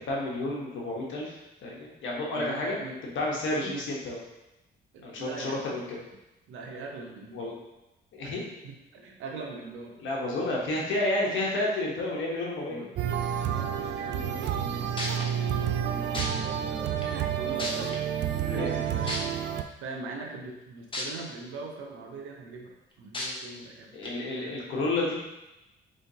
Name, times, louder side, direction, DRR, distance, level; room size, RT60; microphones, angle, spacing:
voice 1, 0.0-1.4 1.6-4.2 5.0-6.0 7.3-7.5 8.1-8.4 10.0-12.8 18.5-18.7 23.9-25.1, left 2 dB, 75° left, -3 dB, 1.1 m, -30 dB
voice 2, 2.3-3.0 3.5-3.8 4.9-5.8 6.5-7.5 8.2-8.4 8.6-10.0 12.7-13.0 13.4-15.0 15.9-18.1 18.4-19.5 19.8-24.5, right 3 dB, 90° right, 1 dB, 0.8 m, -42 dB
sound 1, 13.0-19.6, right 9 dB, 60° right, 0.4 m, -30 dB
sound 2, 14.6-14.7 15.0-15.2 16.1-16.3 17.0-17.1 17.6-18.0 19.1-19.2 20.9-21.0 21.5-21.6 23.1-23.3 24.0-24.1, left 1 dB, 25° left, 0.8 m, -32 dB
4.4 x 3.3 x 2.8 m, 0.97 s
cardioid pair, 90°, 20 cm